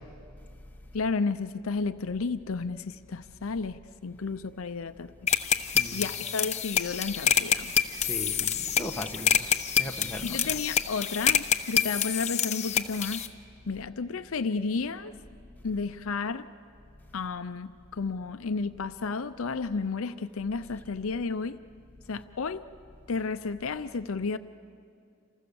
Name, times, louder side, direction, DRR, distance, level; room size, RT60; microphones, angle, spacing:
voice 1, 0.9-5.1 5.5-7.7 10.2-13.3 13.7-15.1 15.6-16.5 17.1-21.6 22.1-22.6 23.1-24.4, left 4 dB, 70° left, 11 dB, 0.6 m, -32 dB
sound 1, 5.3-13.3, left 8 dB, 35° left, 1.0 m, -27 dB
voice 2, 5.7-6.1 8.0-9.5 9.8-10.4, equal, 10° left, 1 dB, 1.4 m, -38 dB
29.5 x 28.0 x 7.0 m, 2.5 s
head